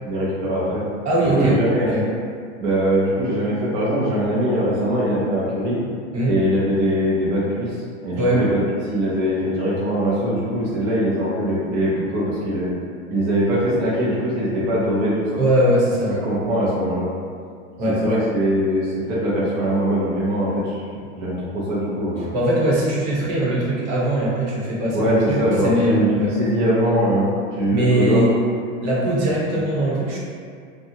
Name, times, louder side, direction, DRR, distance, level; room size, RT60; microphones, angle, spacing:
voice 1, 0.0-0.8 1.2-2.0 2.6-5.8 6.2-7.8 8.0-12.7 13.1-15.4 16.2-17.1 17.9-20.8 21.1-22.3 24.9-28.2 29.5-29.6, equal, 30° right, -8 dB, 0.5 m, -22 dB
voice 2, 1.0-1.6 1.9-2.0 6.1-6.3 8.2-8.4 15.4-16.3 17.8-18.2 22.3-25.4 25.6-26.3 27.7-28.3 28.8-30.2, right 1 dB, 65° right, -6 dB, 1.0 m, -20 dB
2.7 x 2.3 x 2.7 m, 2.2 s
supercardioid pair, 145°, 38 cm